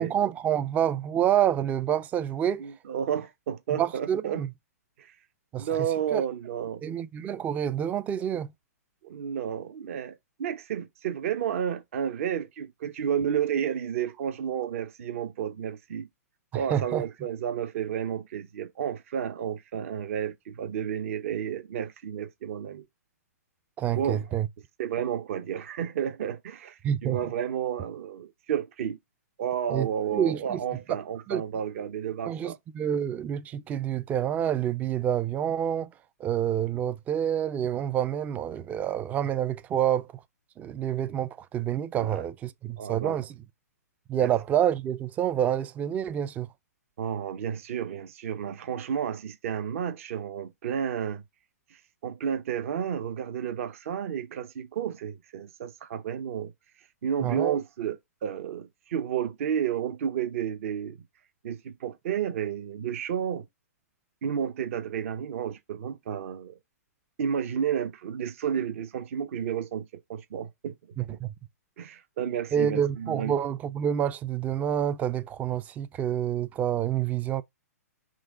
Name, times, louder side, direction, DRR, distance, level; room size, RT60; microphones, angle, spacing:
voice 1, 0.0-2.7 3.7-4.5 5.5-5.7 6.1-6.2 6.8-8.5 16.5-17.0 23.8-24.5 26.8-27.2 29.7-30.6 31.3-31.4 32.3-35.9 36.2-40.1 40.6-43.3 44.1-46.5 57.2-57.6 71.0-71.3 72.5-77.4, right 10 dB, 15° right, 0.4 m, -28 dB
voice 2, 2.6-4.4 5.0-5.1 5.6-6.8 9.0-16.1 16.5-22.8 23.9-24.3 24.8-29.0 29.4-32.6 42.0-42.3 42.8-43.2 44.2-44.3 47.0-51.2 52.0-56.5 57.0-61.0 61.4-63.5 64.2-66.6 67.2-70.7 71.8-73.4, right 8 dB, 55° right, 0.8 m, -31 dB
6.1 x 2.3 x 3.8 m
hypercardioid pair, 125°, 9 cm